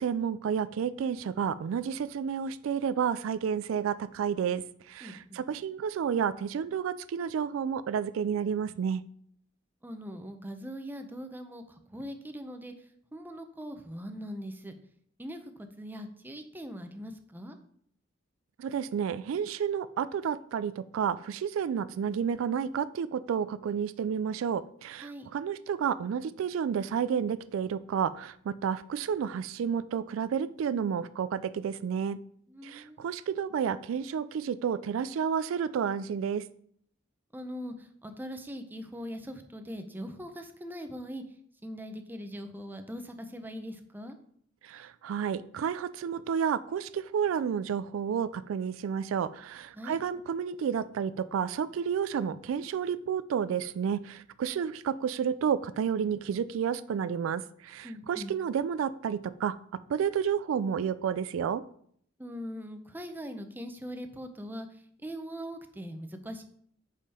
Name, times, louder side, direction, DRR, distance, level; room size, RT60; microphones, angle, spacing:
voice 1, 0.0-9.0 18.6-32.2 32.6-36.4 44.6-59.6 59.9-61.6, right 7 dB, 90° right, 15 dB, 0.3 m, -31 dB
voice 2, 5.0-5.4 9.8-12.7 13.1-14.7 15.2-15.4 15.8-17.6 25.0-25.3 32.5-33.1 37.3-41.2 41.6-44.2 49.7-50.0 57.8-58.4 62.2-64.7 65.0-66.4, equal, 10° right, 6 dB, 0.6 m, -41 dB
5.4 x 5.0 x 4.2 m, 0.63 s
head